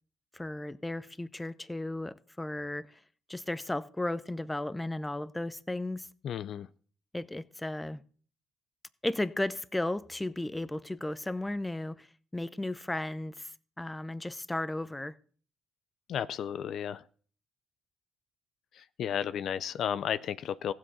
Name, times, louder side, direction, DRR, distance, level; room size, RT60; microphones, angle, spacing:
voice 1, 0.3-3.0 3.3-6.1 7.1-8.0 9.0-12.1 12.3-13.5 13.8-15.1, left 1 dB, 10° left, 0.6 m, -35 dB
voice 2, 6.2-6.7 16.1-17.0 18.7-20.7, left 9 dB, 65° left, 0.4 m, -33 dB
15.5 x 7.6 x 4.1 m
supercardioid pair, 70°, 0 cm